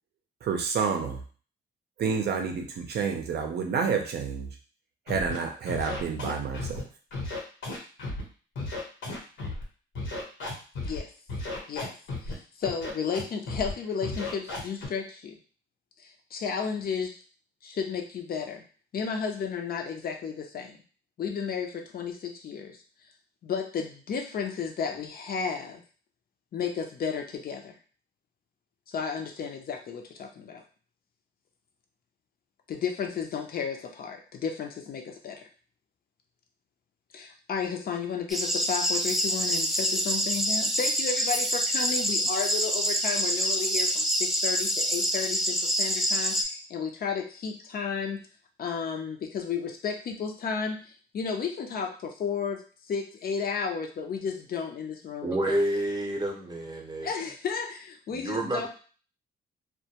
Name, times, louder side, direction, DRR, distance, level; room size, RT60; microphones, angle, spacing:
voice 1, 0.4-1.2 2.0-4.5 5.1-6.8, right 6 dB, 55° right, 4 dB, 0.5 m, -29 dB
Scratching (performance technique), 5.1-5.4 5.7-6.8 7.1-8.2 8.6-9.6 10.0-11.0 11.3-12.3 12.6-13.2 13.5-13.7 14.0-14.9, left 2 dB, 70° left, 1.0 m, -34 dB
voice 2, 12.2-15.4 16.0-17.2 17.6-18.6 18.9-20.8 21.2-22.8 23.4-25.8 26.5-27.7 28.9-30.6 32.7-35.5 37.1-48.2 48.6-52.6 52.9-55.6 57.0-58.7, left 6 dB, 50° left, 3 dB, 0.6 m, -33 dB
sound 1, 38.3-46.4, equal, ahead, 0.3 m, -26 dB
voice 3, 55.2-57.1 58.1-58.7, right 1 dB, 20° right, 0 dB, 0.7 m, -29 dB
2.2 x 2.2 x 2.8 m, 0.39 s
cardioid pair, 90°, 20 cm